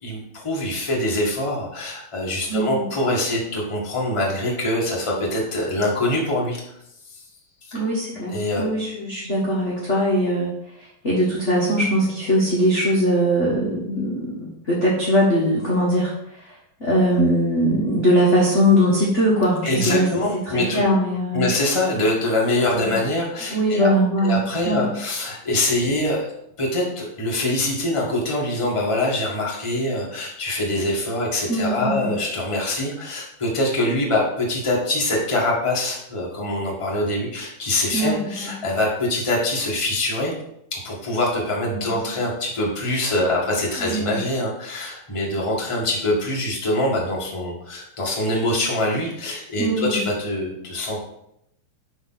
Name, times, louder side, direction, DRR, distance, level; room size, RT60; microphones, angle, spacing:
voice 1, 0.0-6.6 7.1-7.2 7.6-7.8 8.3-8.7 19.6-20.8 21.3-23.9 24.2-26.3 26.6-40.3 40.7-51.0, left 1 dB, 20° left, -3 dB, 0.9 m, -24 dB
voice 2, 2.5-2.9 7.7-10.5 11.0-16.1 16.8-20.1 20.7-21.5 22.7-23.0 23.5-24.4 24.6-24.8 31.5-32.1 37.9-38.5 43.8-44.2 49.6-50.0, equal, 50° left, -5 dB, 0.8 m, -20 dB
10.5 x 4.0 x 4.1 m, 0.77 s
omnidirectional pair, 3.7 m